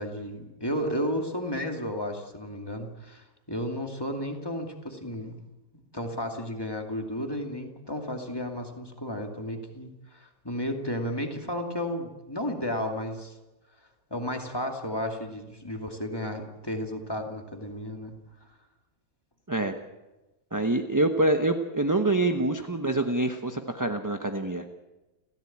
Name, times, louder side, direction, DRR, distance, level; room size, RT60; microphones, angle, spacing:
voice 1, 0.0-5.5 5.7-13.3 14.1-18.1, equal, 15° left, 3 dB, 2.4 m, -33 dB
voice 2, 20.5-24.6, right 2 dB, 15° right, 6 dB, 0.9 m, -26 dB
30.0 x 15.5 x 8.7 m, 1.1 s
omnidirectional pair, 2.0 m